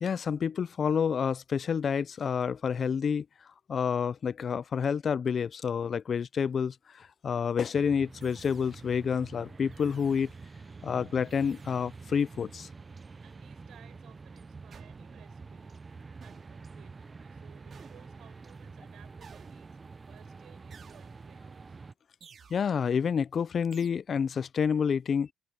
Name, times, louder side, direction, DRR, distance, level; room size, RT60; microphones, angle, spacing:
voice 1, 0.0-3.3 3.7-10.3 10.8-12.7 22.5-25.3, left 6 dB, 50° left, 0.4 m, -29 dB
sound 1, 7.7-21.9, right 4 dB, 30° right, 0.6 m, -47 dB
sound 2, 8.2-9.0 9.7-10.5 11.2-12.0 14.7-15.4 16.2-16.9 17.7-18.4 19.2-20.0 20.7-21.5 22.2-22.9 23.7-23.9, right 6 dB, 50° right, 2.5 m, -56 dB
voice 2, 13.2-19.8 20.1-21.8, right 11 dB, 75° right, 4.9 m, -60 dB
cardioid pair, 90°, 0 cm